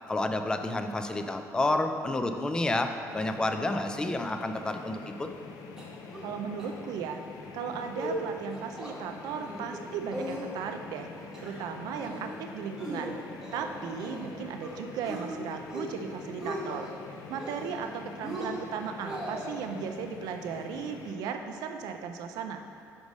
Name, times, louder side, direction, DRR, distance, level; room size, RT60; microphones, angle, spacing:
voice 1, 0.1-5.3, left 2 dB, 15° left, 7 dB, 0.3 m, -30 dB
sound 1, 3.1-21.2, left 4 dB, 80° left, 0.5 m, -45 dB
sound 2, 5.8-6.3 6.6-6.7 7.0-7.3 7.7-8.2 8.5-8.9 9.3-9.8 10.1-10.8 11.2-11.6 12.0-12.4 12.8-14.3 14.6-15.2 15.6-16.0 16.2-16.9 17.3-17.9 18.2-19.5, right 1 dB, 10° right, 1.0 m, -39 dB
voice 2, 6.2-7.2 7.5-11.1 11.4-13.2 13.5-16.9 17.3-22.6, right 6 dB, 85° right, 6 dB, 0.4 m, -36 dB
5.2 x 4.8 x 5.3 m, 2.4 s
cardioid pair, 145°, 6 cm